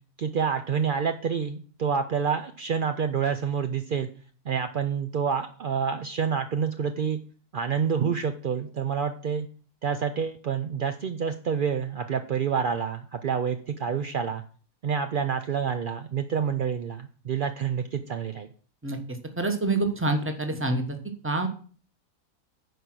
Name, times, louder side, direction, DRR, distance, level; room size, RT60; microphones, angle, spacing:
voice 1, 0.2-4.1 4.5-7.2 7.5-9.5 9.8-14.4 14.8-18.5, right 6 dB, 65° right, 7 dB, 0.5 m, -28 dB
voice 2, 19.4-21.0 21.2-21.5, right 2 dB, 10° right, 5 dB, 0.9 m, -26 dB
9.5 x 5.0 x 6.1 m, 0.43 s
omnidirectional pair, 1.6 m